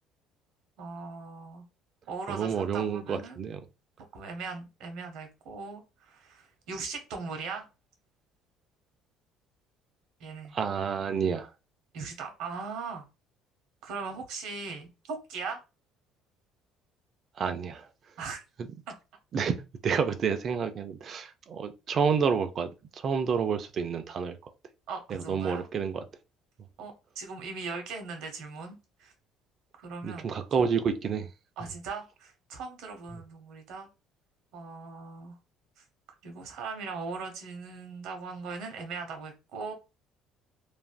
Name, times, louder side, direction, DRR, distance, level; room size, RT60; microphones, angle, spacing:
voice 1, 0.8-1.6 2.1-3.4 4.1-7.7 10.2-10.6 11.9-13.0 13.8-15.6 18.2-18.4 18.9-19.0 24.9-25.6 26.8-28.7 29.0-29.1 29.8-30.3 31.6-33.9 34.5-35.4 36.2-39.7, right 4 dB, 70° right, 0.8 m, -39 dB
voice 2, 2.3-3.6 10.5-11.5 17.4-17.9 19.3-24.4 25.1-26.0 30.0-31.3, right 6 dB, 35° right, 0.3 m, -29 dB
3.2 x 2.4 x 2.2 m
cardioid pair, 150°, 0 cm